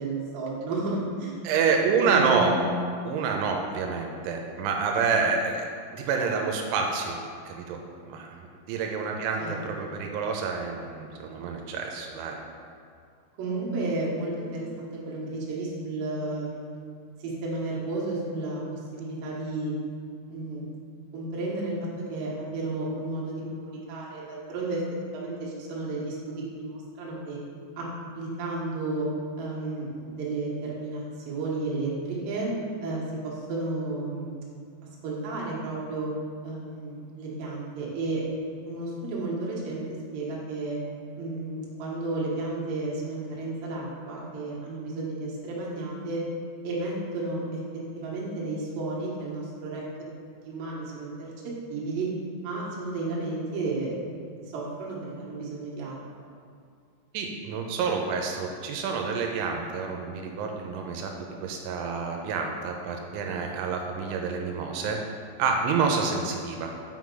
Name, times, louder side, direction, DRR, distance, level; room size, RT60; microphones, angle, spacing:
voice 1, 0.0-1.4 2.0-2.6 9.4-9.6 13.4-16.6 17.2-19.8 20.3-20.7 21.1-24.8 25.1-27.4 27.8-27.9 28.1-29.1 29.4-32.5 32.8-34.3 35.0-36.1 36.4-38.2 38.6-39.8 40.1-40.8 41.2-46.2 46.6-50.1 50.4-51.3 51.7-52.1 52.4-56.0, right 2 dB, 65° right, -5 dB, 2.6 m, -32 dB
voice 2, 1.4-2.5 3.0-5.7 5.9-7.2 7.5-7.8 8.1-12.4 57.1-61.1 61.4-65.0 65.4-66.7, right 5 dB, 85° right, 2 dB, 3.0 m, -28 dB
6.1 x 6.1 x 3.8 m, 2.3 s
omnidirectional pair, 5.3 m